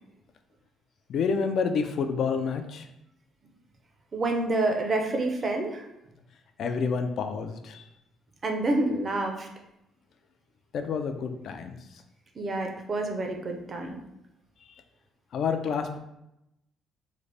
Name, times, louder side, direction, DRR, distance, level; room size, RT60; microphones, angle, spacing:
voice 1, 1.1-2.9 6.6-7.8 10.7-11.8 14.7-14.8 15.3-16.0, left 5 dB, 60° left, 7 dB, 0.3 m, -28 dB
voice 2, 4.1-5.8 8.4-9.5 12.4-14.0, right 2 dB, 35° right, 3 dB, 0.5 m, -28 dB
3.7 x 2.1 x 3.3 m, 0.85 s
cardioid pair, 115°, 0 cm